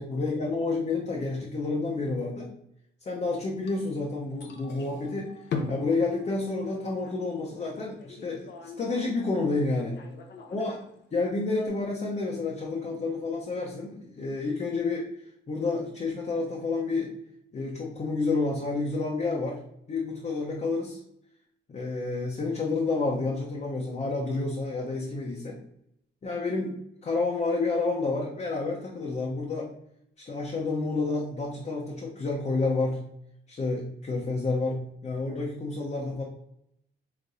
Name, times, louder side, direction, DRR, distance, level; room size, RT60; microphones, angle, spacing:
voice 1, 0.0-2.5 3.0-5.3 5.7-8.5 8.8-10.0 10.5-10.7 11.1-15.1 15.5-17.1 17.5-19.6 19.9-21.0 21.7-25.6 26.2-26.7 27.0-29.7 30.2-33.0 33.5-36.2, left 3 dB, 35° left, -4 dB, 0.9 m, -29 dB
sound 1, 3.6-11.7, left 4 dB, 60° left, 0.8 m, -41 dB
4.9 x 3.4 x 2.7 m, 0.76 s
cardioid pair, 90°, 20 cm